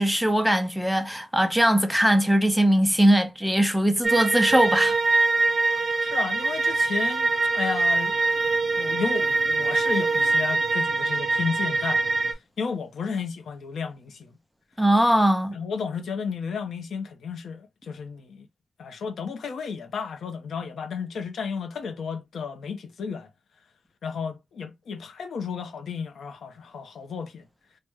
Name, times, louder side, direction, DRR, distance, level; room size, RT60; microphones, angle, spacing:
voice 1, 0.0-5.0 14.8-15.5, right 1 dB, ahead, 0.5 m, -21 dB
sound 1, 4.0-12.3, right 3 dB, 30° right, 0.8 m, -23 dB
voice 2, 6.0-8.2 8.8-14.4 15.5-18.5 18.8-23.3 24.0-27.4, left 5 dB, 85° left, 0.6 m, -33 dB
3.2 x 2.1 x 3.3 m
wide cardioid pair, 125°, 0 cm